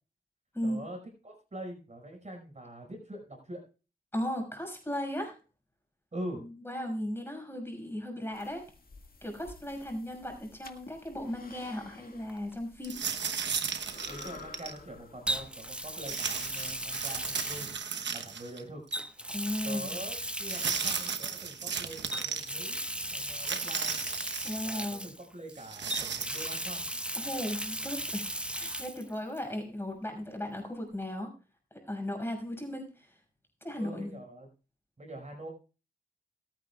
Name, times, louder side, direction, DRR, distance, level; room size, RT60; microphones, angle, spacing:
voice 1, 0.6-1.0 1.2-3.6 6.1-6.5 14.1-17.7 18.1-18.8 19.6-22.8 23.1-23.9 24.6-26.9 33.8-34.5 35.0-35.5, right 1 dB, 40° right, 2 dB, 5.3 m, -44 dB
voice 2, 4.1-5.4 6.6-8.7 9.2-13.1 19.3-20.1 24.4-25.1 27.1-31.3 31.8-33.1 33.6-34.1, left 1 dB, 15° left, 3 dB, 6.0 m, -36 dB
sound 1, 8.3-17.7, left 4 dB, 55° left, 2.0 m, -53 dB
Water tap faucet, 12.3-12.5 15.3-18.3 18.9-21.4 22.1-25.5 25.9-29.0 29.3-29.4 31.0-31.1, right 1 dB, 5° right, 1.2 m, -37 dB
sound 2, 12.8-14.8 16.1-18.6 18.9-19.0 20.4-22.5 23.4-24.6 25.6-26.6, right 6 dB, 75° right, 1.1 m, -35 dB
26.5 x 9.2 x 2.4 m, 0.34 s
cardioid pair, 45°, 18 cm